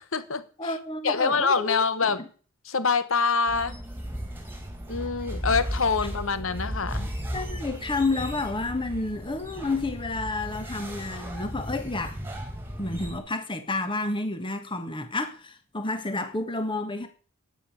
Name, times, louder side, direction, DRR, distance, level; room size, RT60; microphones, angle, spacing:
voice 1, 0.0-0.4 1.0-2.2 2.7-3.8 4.9-7.1, left 5 dB, 65° left, 1.2 m, -25 dB
voice 2, 0.6-2.3 6.0-6.1 7.3-12.2 12.8-17.1, left 2 dB, 25° left, 1.6 m, -30 dB
sound 1, 3.5-13.2, equal, 10° right, 2.8 m, -35 dB
12.0 x 9.5 x 6.7 m
head